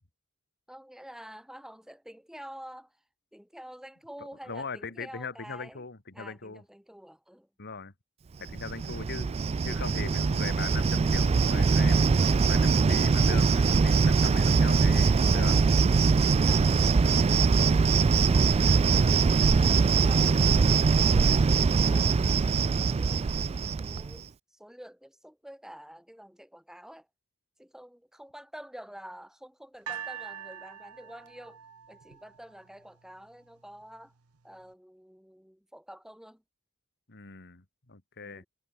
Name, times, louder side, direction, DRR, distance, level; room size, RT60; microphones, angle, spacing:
voice 1, 0.7-3.0 3.3-5.8 6.1-7.5 22.6-23.3 23.8-27.1 27.6-31.6 31.9-34.1 34.4-36.4 38.2-38.5, equal, ahead, 2.0 m, -48 dB
voice 2, 4.5-6.6 7.6-7.9 8.4-9.4 9.6-12.1 12.5-15.6 37.1-38.4, left 4 dB, 50° left, 2.2 m, -40 dB
Cricket, 8.5-24.2, right 4 dB, 30° right, 0.3 m, -22 dB
sound 1, 29.9-33.0 33.8-33.9, right 9 dB, 90° right, 1.0 m, -43 dB
head